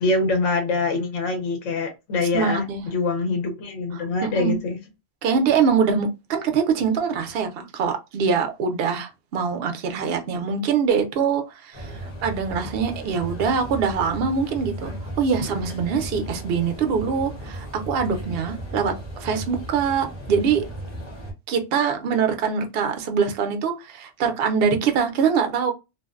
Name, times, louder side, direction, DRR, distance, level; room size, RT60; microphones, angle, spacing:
voice 1, 0.0-4.8, left 3 dB, 80° left, 1.0 m, -24 dB
voice 2, 2.3-2.9 4.0-4.6 5.2-11.9 12.2-18.9 19.2-20.7 21.5-25.7, right 6 dB, 60° right, 0.7 m, -23 dB
sound 1, 11.7-21.3, right 1 dB, 25° left, 0.7 m, -35 dB
2.5 x 2.1 x 2.3 m
omnidirectional pair, 1.3 m